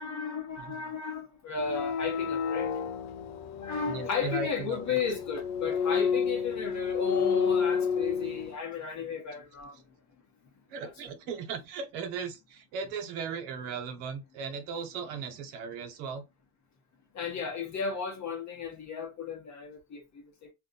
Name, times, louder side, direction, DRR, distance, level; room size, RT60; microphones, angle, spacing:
voice 1, 0.0-2.7 3.6-9.8 10.8-10.9 17.1-20.5, left 5 dB, 35° left, 1.0 m, -34 dB
voice 2, 0.6-0.9 3.9-5.0 10.7-16.2, right 6 dB, 90° right, 1.0 m, -37 dB
sound 1, 1.6-8.5, left 6 dB, 90° left, 0.7 m, -30 dB
2.5 x 2.3 x 3.9 m
cardioid pair, 110°, 48 cm